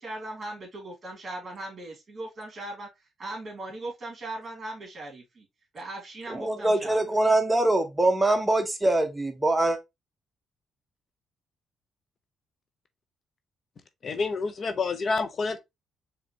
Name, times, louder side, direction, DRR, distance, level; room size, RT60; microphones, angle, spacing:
voice 1, 0.0-2.9 3.2-5.5 5.7-7.2, right 2 dB, 35° right, 2.0 m, -39 dB
voice 2, 6.3-9.8, right 2 dB, 15° right, 0.8 m, -23 dB
voice 3, 14.0-15.6, left 4 dB, 45° left, 0.6 m, -28 dB
4.9 x 3.1 x 2.8 m
cardioid pair, 90°, 0 cm